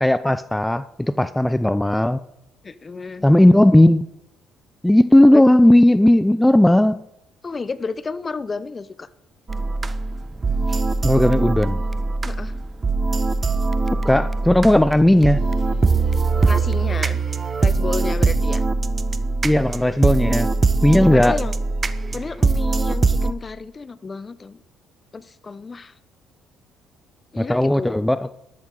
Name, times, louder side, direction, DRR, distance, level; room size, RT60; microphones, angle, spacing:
voice 1, 0.0-2.2 3.2-4.1 4.8-7.0 11.0-11.8 14.0-15.4 19.4-20.5 20.8-21.4 27.4-28.3, left 1 dB, 10° left, 14 dB, 0.5 m, -16 dB
voice 2, 2.6-3.2 5.3-5.4 7.4-9.1 12.2-12.5 16.5-17.2 17.6-18.7 21.0-21.5 22.1-24.6 25.1-25.9 27.3-28.1, left 4 dB, 35° left, 16 dB, 0.8 m, -31 dB
sound 1, 9.5-23.3, right 3 dB, 30° right, 0.9 m, -21 dB
sound 2, 15.1-22.6, right 4 dB, 70° right, 2.8 m, -40 dB
13.0 x 12.5 x 3.9 m, 0.80 s
hypercardioid pair, 55°, 0 cm